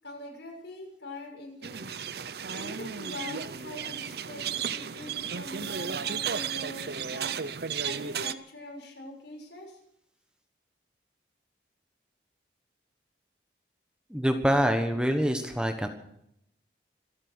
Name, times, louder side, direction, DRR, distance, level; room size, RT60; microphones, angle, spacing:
voice 1, 0.0-1.9 2.5-7.3 7.8-9.8, left 2 dB, 85° left, 1 dB, 6.7 m, -43 dB
sound 1, 1.6-8.3, right 7 dB, 60° right, 0.7 m, -34 dB
voice 2, 14.1-15.9, equal, 5° right, 6 dB, 1.2 m, -25 dB
26.0 x 8.9 x 6.2 m, 0.75 s
head